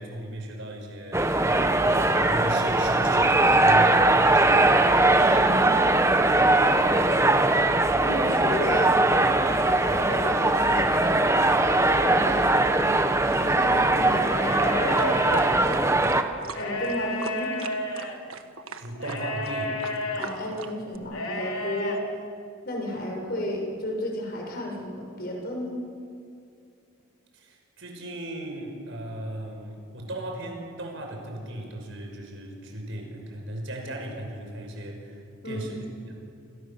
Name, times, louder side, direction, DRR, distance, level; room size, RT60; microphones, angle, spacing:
voice 1, 0.0-4.6 18.7-19.9 27.3-36.3, right 1 dB, 60° right, 2 dB, 6.0 m, -37 dB
sound 1, 1.1-16.2, right 2 dB, 15° right, 1.2 m, -21 dB
voice 2, 5.3-5.9 8.0-9.0 9.9-11.2 12.0-12.6 13.2-15.3 16.5-17.5 20.2-22.0 22.6-25.8 35.4-35.7, left 1 dB, 45° left, 0 dB, 6.3 m, -32 dB
sound 2, 14.2-15.5 16.5-18.2 19.0-20.3 21.1-22.0, left 1 dB, 80° left, 3.7 m, -31 dB
sound 3, 15.0-21.0, right 4 dB, 80° right, 1.6 m, -40 dB
27.5 x 27.5 x 7.3 m, 2.4 s
head